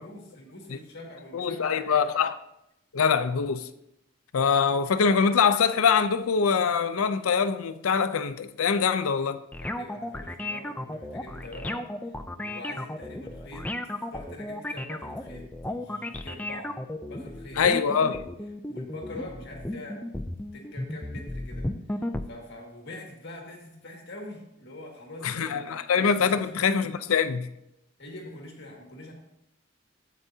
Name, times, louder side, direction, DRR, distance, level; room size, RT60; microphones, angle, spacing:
voice 1, 0.0-2.2 9.6-16.7 17.0-17.6 18.0-18.3 18.7-25.8 26.2-26.6 28.0-29.1, left 1 dB, 55° left, 2.0 m, -44 dB
voice 2, 1.3-2.4 2.9-3.7 4.3-9.4 17.6-18.2 25.2-27.5, left 6 dB, 90° left, 0.5 m, -24 dB
sound 1, 9.5-22.2, left 1 dB, 5° left, 0.4 m, -34 dB
13.5 x 8.3 x 2.7 m
head